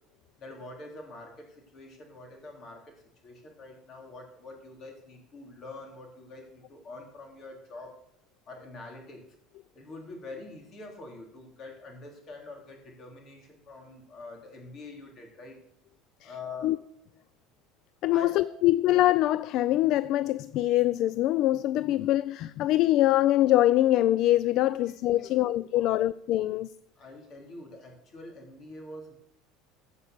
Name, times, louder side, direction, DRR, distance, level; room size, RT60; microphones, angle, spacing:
voice 1, 0.4-8.0 8.4-9.2 9.7-15.6 16.2-16.8 18.1-18.4 24.7-24.8 25.1-25.3 25.7-26.0 27.0-29.1, left 2 dB, 35° left, 3.3 m, -45 dB
voice 2, 18.0-26.7, left 14 dB, 50° left, 0.3 m, -24 dB
15.5 x 5.5 x 6.7 m
cardioid pair, 145°, 0 cm